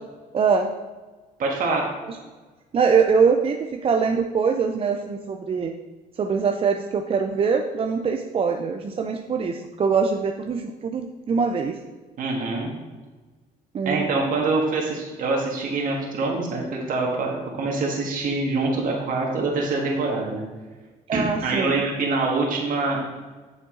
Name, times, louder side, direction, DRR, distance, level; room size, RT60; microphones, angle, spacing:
voice 1, 0.3-0.7 2.1-2.2 2.7-5.7 6.2-11.8 13.7-14.1 21.1-21.8, right 5 dB, 35° right, 4 dB, 0.5 m, -23 dB
voice 2, 1.4-1.8 12.2-12.7 13.8-20.4 21.1-23.0, right 3 dB, 55° right, -2 dB, 1.7 m, -25 dB
7.6 x 6.5 x 3.8 m, 1.3 s
cardioid pair, 110°, 17 cm